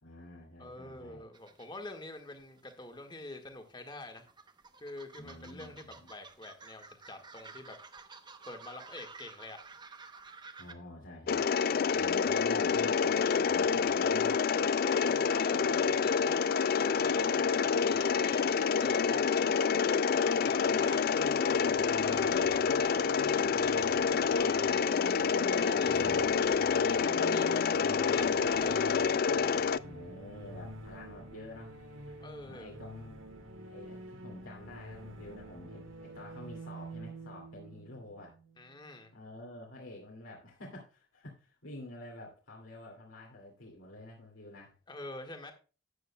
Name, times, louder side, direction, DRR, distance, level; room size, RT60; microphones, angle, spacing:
voice 1, 0.0-1.3 5.2-6.1 10.6-14.4 15.6-16.1 22.2-22.8 23.4-24.2 25.8-26.5 27.0-28.4 29.8-31.8 32.1-32.2 32.5-33.2 33.7-38.4 39.1-44.7, left 1 dB, 85° left, -3 dB, 2.3 m, -49 dB
voice 2, 0.6-4.3 4.8-7.8 8.5-9.6 15.0-19.6 20.1-21.3 21.7-29.0 32.2-32.7 38.6-39.1 44.9-45.5, left 2 dB, 20° left, 4 dB, 1.6 m, -47 dB
sound 1, 1.3-3.0 3.2-10.7, right 4 dB, 20° right, 0.8 m, -52 dB
Mechanisms, 11.3-29.8, left 6 dB, 50° left, 0.3 m, -28 dB
sound 2, 20.4-39.0, right 1 dB, 85° right, 1.6 m, -48 dB
13.0 x 9.0 x 2.2 m, 0.35 s
head